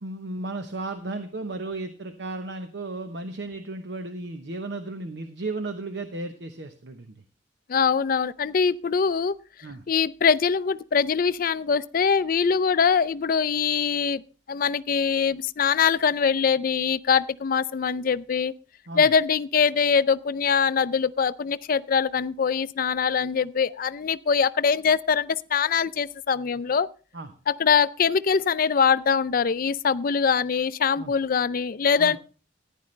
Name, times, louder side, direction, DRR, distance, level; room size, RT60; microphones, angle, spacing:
voice 1, 0.0-7.2 9.6-9.8 18.9-19.1 27.1-27.3 31.0-31.1 32.0-32.2, right 2 dB, 65° right, 0.9 m, -34 dB
voice 2, 7.7-9.3 9.9-14.2 14.5-18.5 18.9-26.9 27.5-32.2, left 6 dB, 50° left, 0.4 m, -23 dB
14.5 x 10.5 x 3.2 m
head